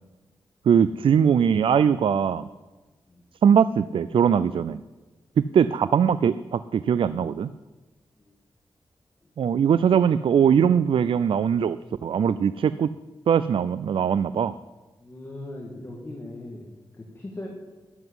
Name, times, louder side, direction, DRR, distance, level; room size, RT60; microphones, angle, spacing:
voice 1, 0.7-2.5 3.4-4.8 5.4-7.5 9.4-12.9 13.3-14.5, right 7 dB, 70° right, 14 dB, 0.4 m, -21 dB
voice 2, 15.0-17.5, left 1 dB, 25° left, -1 dB, 2.0 m, -39 dB
12.0 x 8.0 x 9.8 m, 1.2 s
wide cardioid pair, 175°, 9 cm